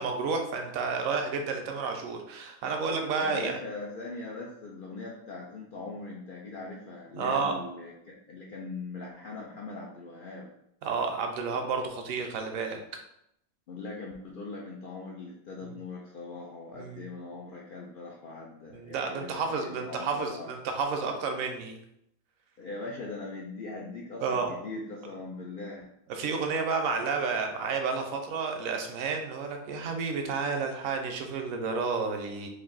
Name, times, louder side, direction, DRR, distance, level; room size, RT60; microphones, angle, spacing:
voice 1, 0.0-3.6 7.1-7.6 10.8-12.8 15.6-15.7 16.8-17.1 18.7-21.8 24.2-24.5 26.1-32.5, right 4 dB, 75° right, 4 dB, 1.0 m, -31 dB
voice 2, 3.1-10.5 13.7-20.6 22.6-25.9, left 3 dB, 75° left, -2 dB, 0.4 m, -40 dB
3.3 x 2.6 x 3.8 m, 0.77 s
omnidirectional pair, 1.5 m